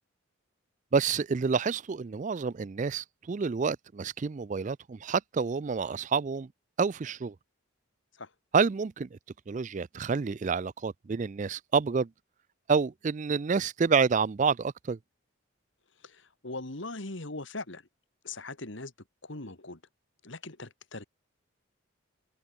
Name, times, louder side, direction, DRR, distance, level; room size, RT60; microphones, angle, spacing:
voice 1, 0.9-6.5 6.8-7.3 8.5-9.2 9.5-12.1 12.7-15.0, right 5 dB, 35° right, 0.4 m, -28 dB
voice 2, 16.0-17.9 18.2-18.9 19.2-19.8 20.2-21.1, left 2 dB, 60° left, 2.1 m, -40 dB
head